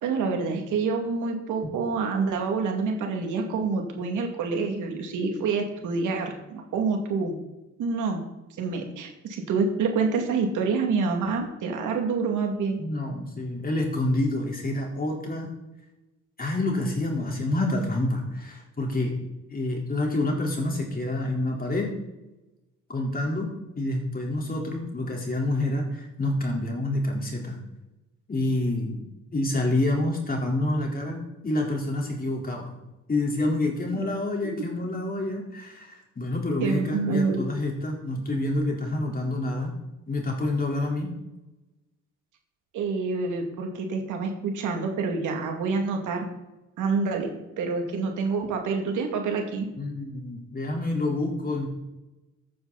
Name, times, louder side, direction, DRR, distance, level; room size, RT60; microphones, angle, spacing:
voice 1, 0.0-7.3 7.8-8.2 8.6-12.8 36.6-37.4 42.7-46.2 46.8-47.3 47.6-49.7, right 4 dB, 85° right, 3 dB, 2.4 m, -27 dB
voice 2, 12.8-15.5 16.4-19.2 19.5-21.9 22.9-23.5 23.8-27.6 28.3-29.0 29.3-32.8 33.1-39.7 40.1-41.1 49.8-51.7, left 2 dB, 30° left, -1 dB, 4.1 m, -28 dB
14.0 x 9.4 x 4.2 m, 0.99 s
cardioid pair, 90°, 30 cm